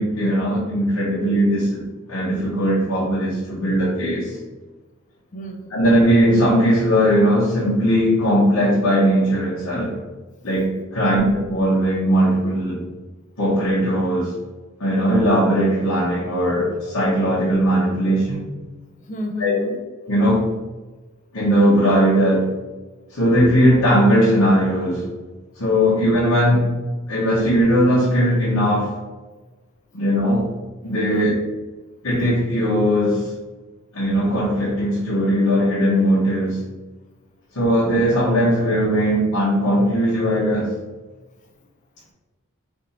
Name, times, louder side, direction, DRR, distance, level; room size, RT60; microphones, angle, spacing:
voice 1, 0.0-1.8 2.1-4.4 5.7-9.9 10.4-12.8 13.4-14.3 14.8-18.5 19.4-19.5 20.1-20.5 21.3-22.5 23.1-25.1 25.5-26.7 27.1-28.9 29.9-30.4 30.8-31.3 32.0-33.3 33.9-36.6 37.5-40.7, equal, 80° left, -8 dB, 1.1 m, -19 dB
voice 2, 5.3-5.8 11.0-11.3 19.0-19.8 25.9-26.0 31.1-31.4, left 1 dB, 35° left, 3 dB, 0.5 m, -31 dB
3.4 x 2.6 x 4.1 m, 1.2 s
head